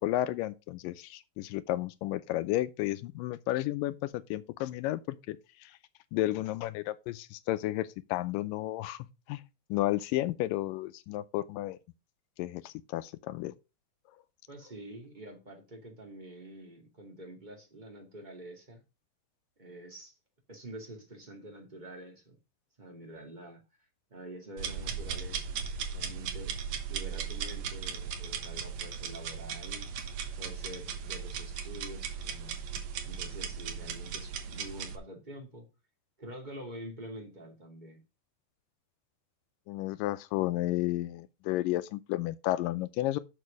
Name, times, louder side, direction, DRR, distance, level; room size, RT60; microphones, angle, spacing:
voice 1, 0.0-5.4 5.6-5.7 6.1-9.0 9.3-9.4 9.7-11.8 12.4-13.5 39.7-43.2, left 15 dB, 85° left, 2.3 m, -32 dB
voice 2, 14.5-18.8 19.6-20.1 20.5-22.4 22.8-23.6 24.1-26.5 26.9-29.9 30.4-32.6 33.1-35.7 36.2-38.0, right 1 dB, 15° right, 2.2 m, -47 dB
sound 1, 24.6-35.0, right 7 dB, 65° right, 2.3 m, -37 dB
6.8 x 6.5 x 5.1 m
omnidirectional pair, 3.9 m